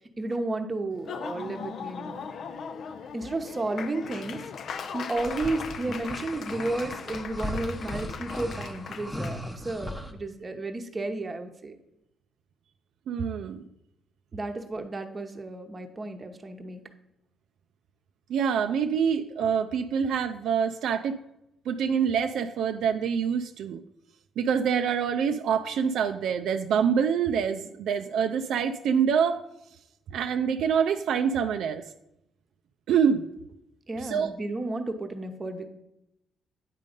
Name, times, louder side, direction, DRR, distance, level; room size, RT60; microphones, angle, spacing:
voice 1, 0.2-2.3 3.1-4.4 4.9-11.7 14.3-16.8 33.9-35.7, right 2 dB, 25° right, 5 dB, 0.9 m, -32 dB
Laughter / Applause, 0.9-9.4, left 6 dB, 60° left, 0.5 m, -39 dB
sound 1, 5.2-10.1, left 1 dB, 10° left, 0.8 m, -37 dB
voice 2, 13.1-13.6 18.3-21.2 21.7-23.8 24.4-29.4 30.1-31.8 32.9-33.3 34.0-34.3, right 7 dB, 75° right, 7 dB, 0.4 m, -26 dB
9.1 x 3.8 x 5.2 m, 0.85 s
cardioid pair, 90°, 0 cm